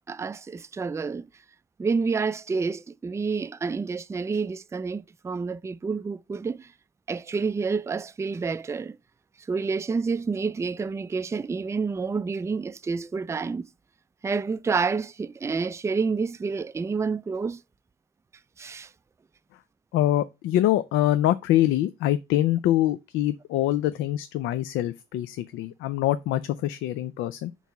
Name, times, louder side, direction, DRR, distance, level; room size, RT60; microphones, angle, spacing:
voice 1, 0.1-1.3 1.8-6.7 7.1-9.0 9.5-13.7 14.2-17.6 18.6-18.9, right 4 dB, 15° right, 0.3 m, -29 dB
voice 2, 19.9-27.5, left 13 dB, 90° left, 0.4 m, -24 dB
4.6 x 4.0 x 5.5 m
cardioid pair, 90°, 20 cm